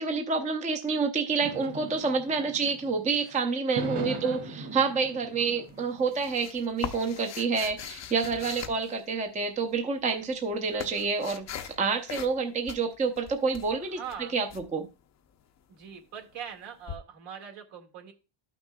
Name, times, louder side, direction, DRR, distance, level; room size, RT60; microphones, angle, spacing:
voice 1, 0.0-14.0 14.3-14.5 14.7-14.9, right 4 dB, 15° right, 5 dB, 0.6 m, -28 dB
sound 1, 1.4-3.2 3.7-6.0, right 2 dB, 40° right, 2.3 m, -38 dB
voice 2, 2.4-2.7 3.1-3.4 4.0-4.4 8.4-8.8 13.8-14.4 15.7-18.1, right 7 dB, 65° right, 3 dB, 1.9 m, -43 dB
sound 2, 5.7-9.5 10.2-11.8 12.1-12.4 12.7-14.6 16.9-17.0, left 9 dB, 35° left, 0.5 m, -41 dB
12.5 x 6.0 x 2.2 m, 0.28 s
cardioid pair, 155°, 47 cm